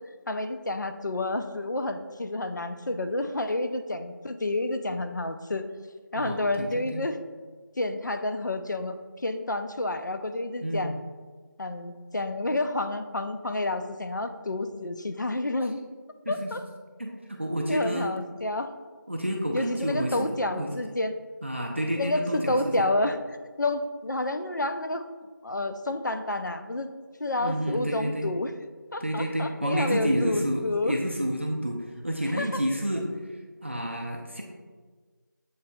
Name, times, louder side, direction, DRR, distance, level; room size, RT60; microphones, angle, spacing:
voice 1, 0.3-5.7 6.1-7.2 7.8-10.9 11.6-15.8 16.3-16.6 17.7-18.7 19.5-21.1 22.0-23.2 23.6-25.0 25.4-26.9 27.2-28.5 28.9-31.0 32.4-32.5, left 2 dB, 60° left, 8 dB, 0.4 m, -29 dB
voice 2, 6.2-7.0 10.6-10.9 16.3-16.5 17.0-18.2 19.1-20.7 21.4-22.9 27.4-28.3 29.0-33.1 33.6-34.4, equal, 35° right, 0 dB, 0.4 m, -30 dB
7.9 x 2.6 x 2.2 m, 1.4 s
figure-of-eight pair, 175°, 11 cm